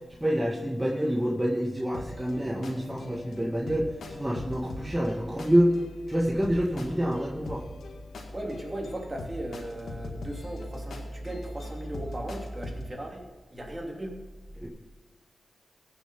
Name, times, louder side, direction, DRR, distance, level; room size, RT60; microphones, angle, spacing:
voice 1, 0.2-5.8 6.1-7.6 14.6-14.7, equal, 15° right, -3 dB, 1.9 m, -27 dB
sound 1, 1.9-12.8, left 1 dB, 90° left, 1.7 m, -41 dB
voice 2, 8.3-13.2 13.5-14.1, right 1 dB, 30° right, 0 dB, 3.0 m, -37 dB
16.0 x 7.0 x 5.4 m, 1.3 s
cardioid pair, 60°, 0 cm